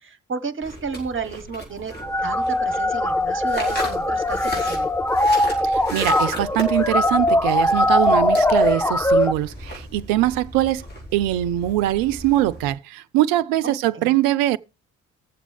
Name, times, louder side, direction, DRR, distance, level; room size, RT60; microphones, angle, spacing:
voice 1, 0.0-1.9 2.2-4.9 13.6-14.1, right 5 dB, 30° right, 1.3 m, -32 dB
sound 1, 0.6-12.7, equal, 25° left, 4.9 m, -36 dB
sound 2, 2.0-9.3, left 1 dB, 5° left, 0.6 m, -20 dB
voice 2, 5.6-10.8 11.1-14.6, right 14 dB, 65° right, 0.6 m, -22 dB
18.5 x 7.3 x 3.5 m
figure-of-eight pair, 45°, 38 cm